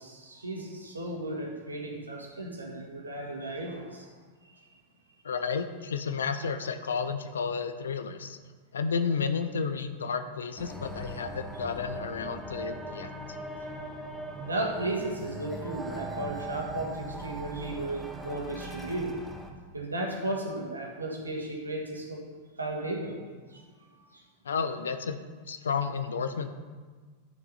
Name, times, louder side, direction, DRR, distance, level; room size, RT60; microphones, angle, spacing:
voice 1, 0.0-4.1 4.4-4.7 14.4-19.1 19.7-22.2 22.6-23.2 23.5-24.2, right 2 dB, 80° right, 1 dB, 1.7 m, -35 dB
voice 2, 5.2-8.4 8.7-13.1 24.4-25.2 25.5-26.5, left 5 dB, 70° left, 9 dB, 0.6 m, -32 dB
sound 1, 10.6-19.5, right 1 dB, 5° left, 1.1 m, -40 dB
11.5 x 6.6 x 4.3 m, 1.4 s
figure-of-eight pair, 90°, 0 cm